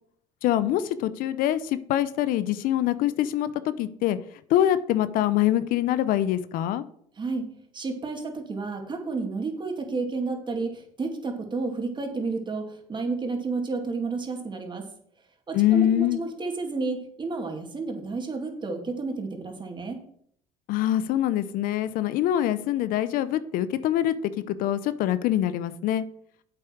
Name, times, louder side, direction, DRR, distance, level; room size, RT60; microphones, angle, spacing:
voice 1, 0.4-4.2 4.5-6.8 15.5-16.2 20.7-26.0, left 12 dB, 65° left, 15 dB, 0.7 m, -24 dB
voice 2, 7.2-14.9 15.5-20.0, right 3 dB, 30° right, 3 dB, 2.4 m, -31 dB
8.4 x 7.8 x 4.6 m, 0.64 s
supercardioid pair, 85°, 16 cm